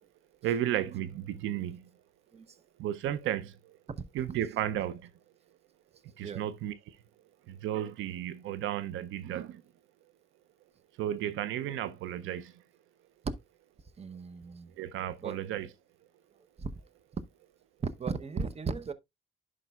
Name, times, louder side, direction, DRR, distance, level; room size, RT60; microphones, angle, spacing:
voice 1, 0.4-1.9 2.8-3.8 4.1-5.1 6.2-7.0 7.5-9.6 11.0-12.5 14.8-15.7, right 11 dB, 85° right, 0.5 m, -33 dB
voice 2, 14.0-14.7 15.2-15.4 16.6-16.8 17.8-18.9, right 5 dB, 30° right, 0.7 m, -36 dB
11.0 x 5.1 x 2.3 m
cardioid pair, 90°, 20 cm